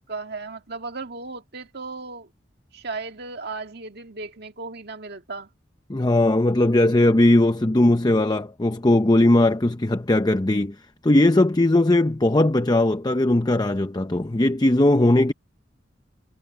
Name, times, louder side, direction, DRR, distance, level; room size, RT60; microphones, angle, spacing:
voice 1, 0.1-2.3 2.7-5.5, right 3 dB, 60° right, 2.1 m, -35 dB
voice 2, 5.9-10.7 11.0-15.3, left 1 dB, 20° left, 0.7 m, -19 dB
head